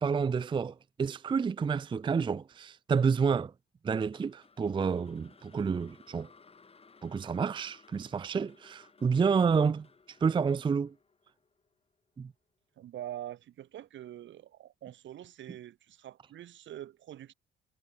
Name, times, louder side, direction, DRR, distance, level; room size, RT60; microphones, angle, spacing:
voice 1, 0.0-3.5 3.8-6.3 7.0-9.9 10.2-10.9 12.2-12.3, right 5 dB, 25° right, 0.4 m, -29 dB
sound 1, 4.1-12.3, left 4 dB, 30° left, 2.7 m, -60 dB
voice 2, 12.8-17.3, right 12 dB, 70° right, 1.6 m, -44 dB
cardioid pair, 90°, 20 cm